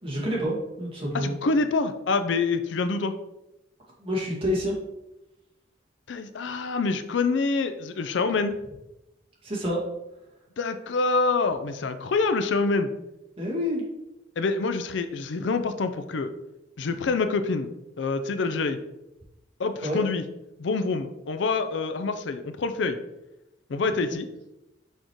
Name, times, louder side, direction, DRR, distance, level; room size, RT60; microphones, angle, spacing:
voice 1, 0.0-1.4 4.0-4.8 9.4-9.8 13.4-13.8 19.8-20.0, equal, 30° right, -3 dB, 1.9 m, -28 dB
voice 2, 1.1-3.1 6.1-8.6 10.6-12.9 14.4-16.3 16.8-17.7 18.0-18.8 19.6-20.2 20.6-23.0 23.7-24.3, left 4 dB, 70° left, 9 dB, 0.5 m, -26 dB
6.3 x 5.1 x 3.0 m, 0.92 s
head